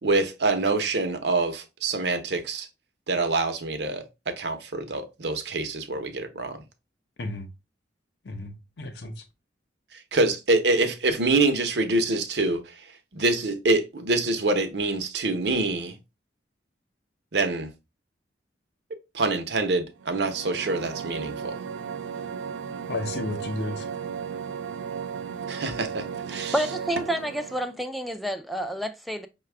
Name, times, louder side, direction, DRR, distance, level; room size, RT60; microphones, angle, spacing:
voice 1, 0.0-2.7 3.1-6.6 9.9-12.6 13.1-15.9 17.3-17.7 19.1-21.5 25.5-26.5, right 3 dB, 65° right, 0.8 m, -25 dB
voice 2, 8.2-9.2 22.9-23.9, left 2 dB, 65° left, 0.8 m, -33 dB
sound 1, 20.0-27.8, right 6 dB, 85° right, 0.4 m, -35 dB
voice 3, 26.5-29.3, right 1 dB, ahead, 0.3 m, -29 dB
5.5 x 2.3 x 3.3 m
head